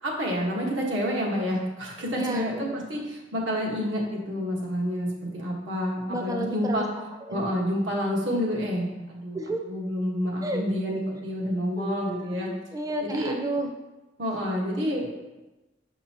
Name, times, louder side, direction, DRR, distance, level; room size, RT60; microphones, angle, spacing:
voice 1, 0.0-6.9 7.3-9.4 9.7-12.5 13.0-13.4 14.2-15.1, equal, 90° right, -2 dB, 1.4 m, -28 dB
voice 2, 2.1-2.8 6.1-7.4 9.3-9.6 10.4-10.6 11.8-13.7, right 1 dB, 20° right, 3 dB, 0.4 m, -32 dB
6.4 x 5.4 x 2.9 m, 1.1 s
head